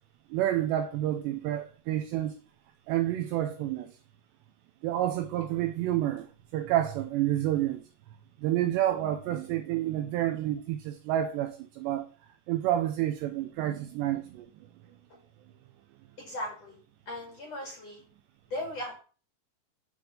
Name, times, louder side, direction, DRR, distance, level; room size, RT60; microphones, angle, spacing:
voice 1, 0.3-2.4 2.9-3.9 4.8-6.3 6.5-7.8 8.4-12.1 12.5-14.5, right 12 dB, 90° right, 2.5 m, -29 dB
voice 2, 16.2-16.8 17.1-18.0 18.5-19.0, left 1 dB, 50° left, 2.0 m, -37 dB
8.2 x 4.6 x 6.7 m
omnidirectional pair, 5.5 m